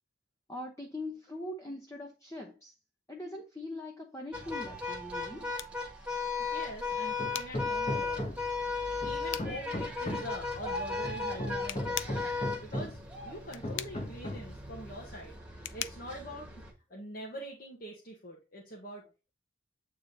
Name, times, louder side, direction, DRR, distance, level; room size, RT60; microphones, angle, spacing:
voice 1, 0.5-2.7 3.1-5.5, left 1 dB, 15° left, 0.9 m, -42 dB
sound 1, 4.3-16.7, left 4 dB, 5° right, 1.4 m, -36 dB
sound 2, 4.8-17.3, left 11 dB, 85° left, 0.5 m, -45 dB
voice 2, 6.4-8.5 8.8-16.6 16.9-19.0, equal, 50° left, 1.5 m, -44 dB
Hammer, 7.2-8.6 9.0-10.4 11.0-13.1 13.6-14.6, left 1 dB, 30° left, 1.4 m, -37 dB
8.5 x 3.8 x 4.0 m
head